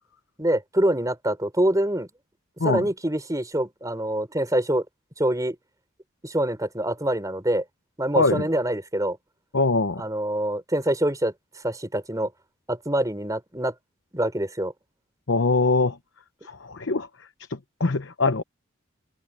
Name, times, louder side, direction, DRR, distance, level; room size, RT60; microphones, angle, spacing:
voice 1, 0.4-2.1 2.6-4.8 5.2-5.6 6.2-7.6 8.0-9.2 10.0-11.3 11.6-12.3 12.7-13.7 14.1-14.7, right 1 dB, 15° right, 4.8 m, -25 dB
voice 2, 9.5-10.0 15.3-16.0 16.4-17.1 17.8-18.4, left 3 dB, 65° left, 0.9 m, -22 dB
head